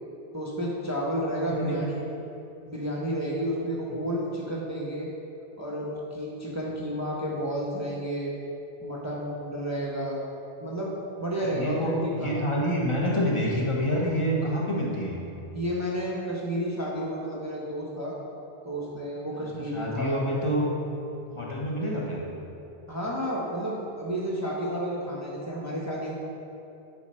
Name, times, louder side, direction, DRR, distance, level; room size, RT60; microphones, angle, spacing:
voice 1, 0.3-2.0 2.6-5.1 5.6-8.3 8.8-10.2 10.6-10.9 11.2-12.5 15.5-18.1 18.6-20.2 22.9-26.2, equal, 15° right, -4 dB, 1.0 m, -31 dB
voice 2, 11.4-15.2 19.6-20.7 21.2-22.2, equal, 30° left, -3 dB, 1.3 m, -27 dB
10.0 x 4.2 x 5.5 m, 2.8 s
omnidirectional pair, 1.1 m